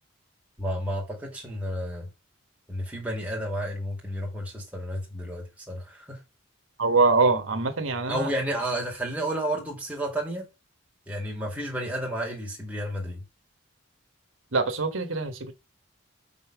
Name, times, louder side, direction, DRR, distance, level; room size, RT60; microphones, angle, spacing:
voice 1, 0.6-2.1 2.7-6.2 8.1-10.5 11.1-13.2, right 1 dB, 5° right, 2.1 m, -31 dB
voice 2, 6.8-8.3 14.5-15.5, right 4 dB, 75° right, 1.3 m, -23 dB
5.5 x 4.3 x 5.9 m
head